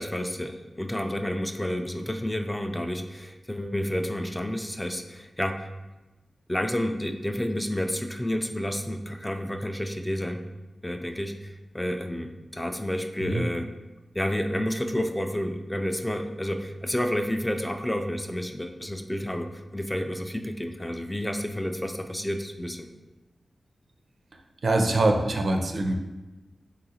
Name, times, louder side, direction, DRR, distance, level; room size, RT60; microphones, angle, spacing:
voice 1, 0.0-5.7 6.5-10.4 10.8-13.7 14.1-22.9, left 1 dB, 10° left, 5 dB, 0.3 m, -30 dB
voice 2, 24.6-25.9, right 2 dB, 70° right, 3 dB, 0.4 m, -23 dB
3.9 x 3.7 x 2.7 m, 1.1 s
cardioid pair, 65°, 0 cm